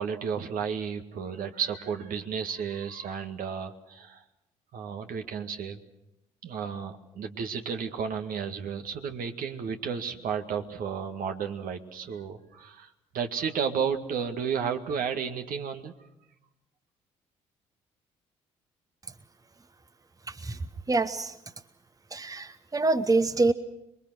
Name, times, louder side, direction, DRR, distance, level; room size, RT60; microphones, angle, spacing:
voice 1, 0.0-4.2 4.7-5.8 6.4-15.9, right 6 dB, 65° right, 6 dB, 2.1 m, -32 dB
voice 2, 20.3-21.4 22.1-23.5, right 3 dB, 20° right, 12 dB, 1.2 m, -26 dB
27.0 x 22.0 x 6.3 m, 0.86 s
hypercardioid pair, 50°, 16 cm